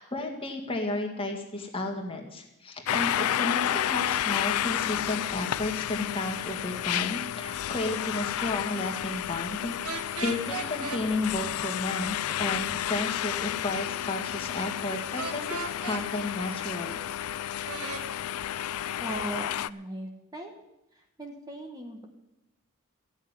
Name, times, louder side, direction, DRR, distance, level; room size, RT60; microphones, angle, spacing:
voice 1, 0.0-16.9, left 2 dB, 25° left, 1 dB, 1.9 m, -33 dB
sound 1, 2.9-19.7, left 11 dB, 80° left, 0.4 m, -31 dB
sound 2, 9.8-11.0 15.2-16.0 17.6-18.0, right 4 dB, 90° right, 1.1 m, -35 dB
voice 2, 19.0-20.6 20.9-22.1, right 1 dB, 15° right, 2 dB, 1.3 m, -38 dB
14.5 x 6.4 x 9.7 m, 0.91 s
head